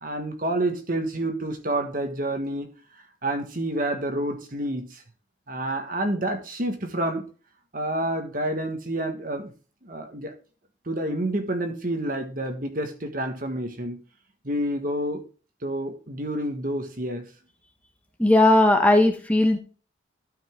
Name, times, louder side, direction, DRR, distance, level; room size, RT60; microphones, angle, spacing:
voice 1, 0.0-2.7 3.2-5.0 5.5-7.2 7.7-9.5 9.8-10.3 10.8-14.0 14.4-15.2 15.6-17.2, right 1 dB, 45° right, 6 dB, 1.5 m, -28 dB
voice 2, 18.2-19.6, left 1 dB, 5° left, 2 dB, 1.2 m, -17 dB
12.5 x 5.6 x 3.7 m, 0.36 s
head